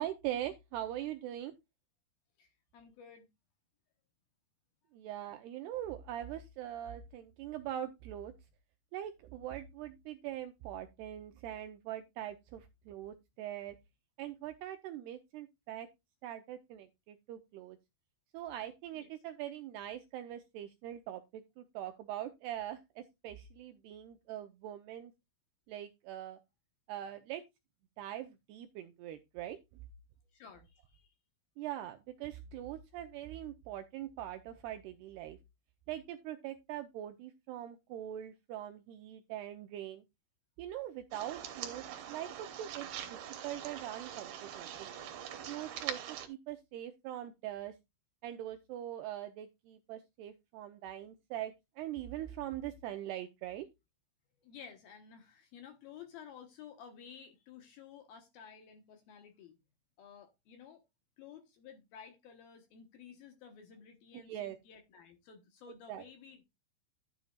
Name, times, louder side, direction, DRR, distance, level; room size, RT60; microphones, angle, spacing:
voice 1, 0.0-1.5 4.9-8.3 8.9-13.8 14.2-15.9 16.2-17.8 18.3-25.1 25.7-26.4 26.9-27.4 28.0-29.6 31.6-35.4 35.9-40.0 40.6-43.2 43.4-44.9 45.5-47.7 48.2-53.7 64.1-64.6 65.9-66.0, right 12 dB, 90° right, 7 dB, 2.4 m, -42 dB
voice 2, 2.4-3.3 18.9-19.1 30.3-31.1 54.4-59.6 60.0-60.8 61.2-66.4, left 7 dB, 65° left, 6 dB, 2.6 m, -53 dB
sound 1, 41.1-46.3, right 10 dB, 65° right, 2.9 m, -43 dB
12.5 x 8.5 x 2.4 m, 0.22 s
omnidirectional pair, 5.5 m